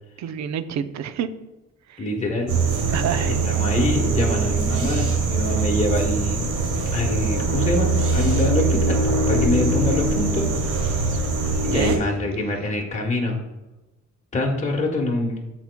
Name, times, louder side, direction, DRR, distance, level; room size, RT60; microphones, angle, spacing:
voice 1, 0.2-1.3 1.9-2.1 2.9-3.4 10.9-11.2 11.6-12.0, right 8 dB, 65° right, 11 dB, 0.6 m, -29 dB
voice 2, 2.0-2.5 3.1-6.5 6.9-10.5 11.6-13.4 14.3-15.4, left 2 dB, 25° left, -1 dB, 1.1 m, -25 dB
sound 1, 2.5-12.0, right 3 dB, 85° right, 1.4 m, -22 dB
12.5 x 4.2 x 2.2 m, 1.0 s
cardioid pair, 90°, 30 cm